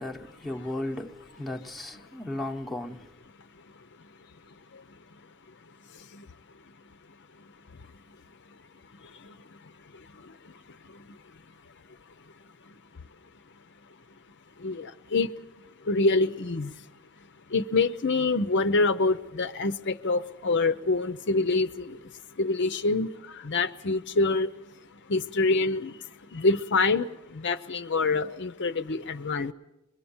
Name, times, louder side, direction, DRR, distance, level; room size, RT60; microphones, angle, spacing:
voice 1, 0.0-3.1, left 1 dB, ahead, 1.0 m, -35 dB
voice 2, 14.6-15.3 15.9-16.7 17.5-21.9 22.4-23.1 23.4-24.5 25.1-25.9 26.3-27.1 27.4-29.5, left 3 dB, 55° left, 0.7 m, -25 dB
23.5 x 22.5 x 7.2 m
head